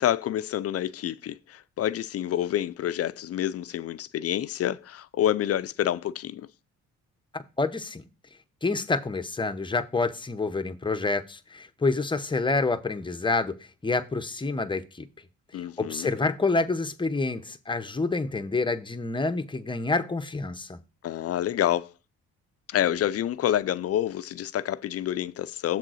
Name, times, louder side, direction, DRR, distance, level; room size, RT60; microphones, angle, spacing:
voice 1, 0.0-6.5 15.5-16.1 21.0-21.9 22.7-25.8, left 11 dB, 50° left, 0.4 m, -28 dB
voice 2, 7.3-8.0 8.6-13.6 13.8-15.1 15.8-20.8, left 3 dB, 15° left, 0.7 m, -28 dB
7.5 x 3.8 x 6.2 m
cardioid pair, 90°, 30 cm